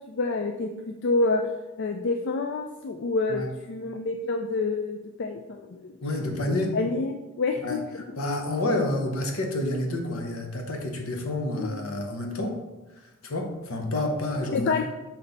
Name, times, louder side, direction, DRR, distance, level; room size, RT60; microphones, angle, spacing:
voice 1, 0.1-1.4 1.8-3.4 3.7-5.9 6.5-8.0 11.6-11.9 14.5-14.8, left 3 dB, 55° left, 5 dB, 0.4 m, -28 dB
voice 2, 6.0-6.8 7.6-7.8 8.2-12.6 13.0-14.8, left 1 dB, 75° left, 3 dB, 1.0 m, -29 dB
6.0 x 4.2 x 4.0 m, 1.1 s
head